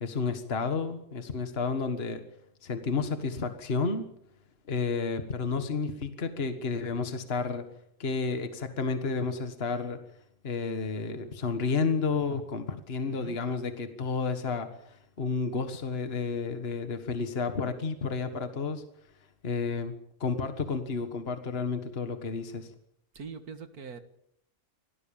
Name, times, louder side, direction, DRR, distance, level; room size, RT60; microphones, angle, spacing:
voice 1, 0.0-2.2 2.6-4.1 4.7-7.6 8.0-10.0 10.4-18.8 19.4-19.9 20.2-22.7, left 4 dB, 45° left, 8 dB, 1.8 m, -31 dB
voice 2, 13.1-13.4 23.2-24.0, right 6 dB, 90° right, 9 dB, 2.1 m, -42 dB
26.0 x 18.0 x 7.2 m, 0.74 s
omnidirectional pair, 1.5 m